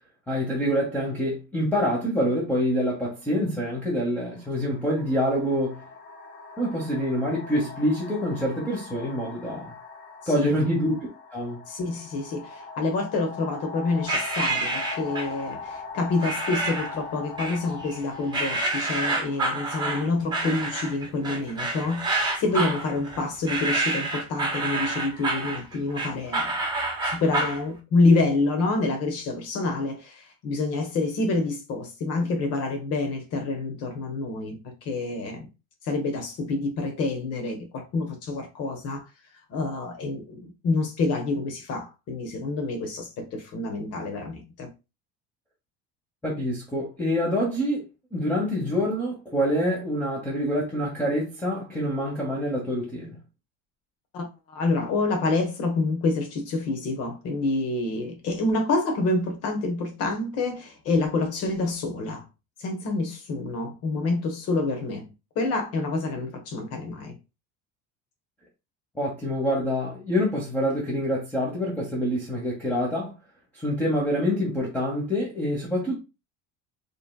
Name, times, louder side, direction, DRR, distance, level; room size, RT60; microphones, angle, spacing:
voice 1, 0.3-5.8 6.6-9.7 10.3-11.0 11.3-11.6 46.2-47.8 48.1-53.2 68.9-73.2 73.5-76.0, equal, 5° left, 1.0 m, -26 dB
sound 1, 3.3-3.4 4.4-21.0, left 4 dB, 35° left, 0.8 m, -41 dB
voice 2, 10.2-10.5 11.7-26.6 27.0-35.5 35.8-39.0 39.5-44.7 54.1-62.2 62.6-65.1 65.3-67.2, left 3 dB, 55° left, 1.2 m, -27 dB
sound 2, 14.1-15.4 16.2-17.0 17.4-18.0 18.3-27.6, right 2 dB, 15° right, 1.2 m, -28 dB
5.0 x 3.3 x 2.2 m
cardioid pair, 150°, 30 cm